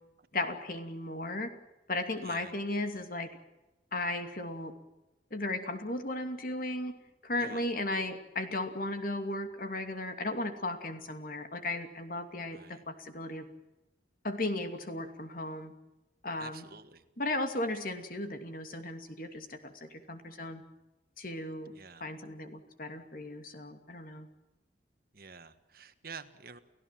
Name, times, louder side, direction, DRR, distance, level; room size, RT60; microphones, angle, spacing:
voice 1, 0.3-1.5 1.9-3.3 3.9-4.7 5.3-7.0 7.2-13.4 14.2-15.7 16.2-16.6 17.2-20.6 21.2-21.7 22.0-24.3, left 2 dB, 50° left, 7 dB, 2.6 m, -36 dB
voice 2, 2.2-2.5 7.4-7.6 12.5-12.8 16.4-17.0 21.7-22.1 25.1-26.6, right 5 dB, 55° right, 10 dB, 1.6 m, -48 dB
30.0 x 15.5 x 7.6 m, 0.99 s
head